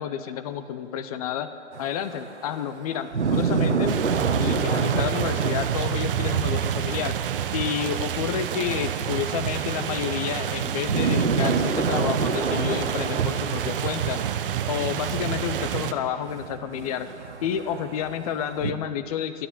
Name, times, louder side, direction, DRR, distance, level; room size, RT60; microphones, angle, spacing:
voice 1, 0.0-1.5 1.8-4.0 4.4-7.2 7.5-14.2 14.7-17.1 17.4-19.5, left 9 dB, 35° left, 11 dB, 0.5 m, -30 dB
sound 1, 1.7-7.5 7.8-7.9 8.4-18.7, right 5 dB, 75° right, 1.0 m, -29 dB
sound 2, 3.9-15.9, right 10 dB, 50° right, 0.7 m, -28 dB
11.0 x 7.6 x 9.3 m, 2.4 s
figure-of-eight pair, 105°, 35 cm